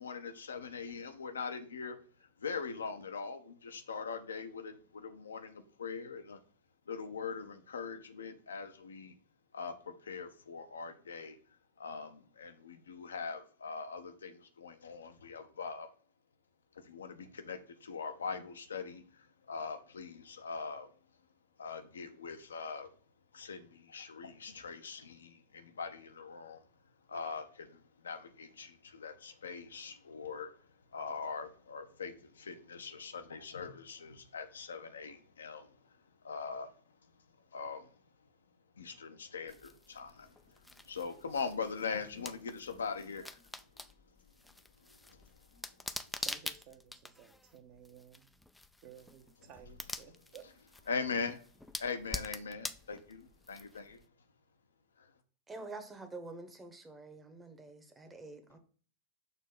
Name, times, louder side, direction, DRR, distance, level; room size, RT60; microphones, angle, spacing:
voice 1, 0.0-6.4 6.9-9.2 9.5-11.4 11.8-15.9 16.8-20.9 21.6-22.9 23.3-26.6 27.1-30.5 30.9-35.8 36.2-36.7 37.5-37.9 38.8-40.5 40.9-43.4 44.9-45.2 50.9-51.4 51.8-54.0 55.0-55.1, left 5 dB, 70° left, 0.7 m, -42 dB
sound 1, 39.5-54.0, left 2 dB, 5° left, 0.4 m, -46 dB
voice 2, 46.2-48.3 48.8-50.4, right 9 dB, 45° right, 1.1 m, -55 dB
voice 3, 55.5-58.6, right 3 dB, 15° right, 1.1 m, -47 dB
6.6 x 3.0 x 5.4 m
figure-of-eight pair, 90°, 0 cm